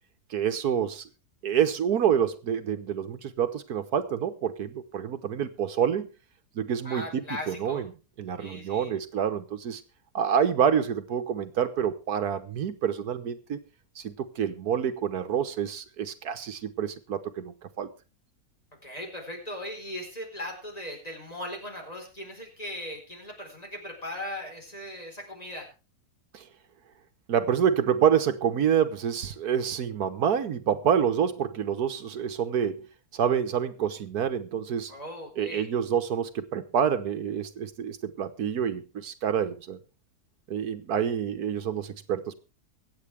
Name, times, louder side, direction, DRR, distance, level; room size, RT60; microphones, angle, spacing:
voice 1, 0.3-1.1 1.4-6.1 6.5-7.9 8.2-9.8 10.1-13.6 14.0-17.9 26.3-26.4 27.3-32.9 33.1-34.9 35.4-39.8 40.5-42.3, right 8 dB, 75° right, 1.5 m, -27 dB
voice 2, 6.8-7.9 8.4-8.9 18.8-25.7 34.9-35.7, left 1 dB, 25° left, 4.5 m, -38 dB
24.0 x 8.6 x 3.4 m
omnidirectional pair, 1.6 m